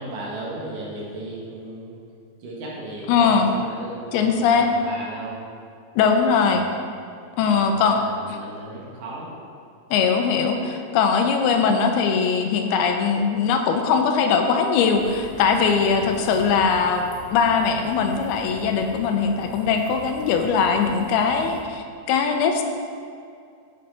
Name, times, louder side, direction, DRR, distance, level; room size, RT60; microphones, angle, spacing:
voice 1, 0.0-2.0 2.4-5.4 6.3-6.7 7.4-9.4 15.9-16.3, right 1 dB, 65° right, -4 dB, 2.7 m, -36 dB
voice 2, 3.1-3.5 4.1-4.7 6.0-6.6 7.4-8.0 9.9-17.1 17.3-22.6, left 6 dB, 90° left, 4 dB, 2.6 m, -20 dB
sound 1, 14.9-21.6, left 1 dB, 60° left, 2.7 m, -42 dB
8.8 x 8.5 x 4.1 m, 2.3 s
omnidirectional pair, 4.5 m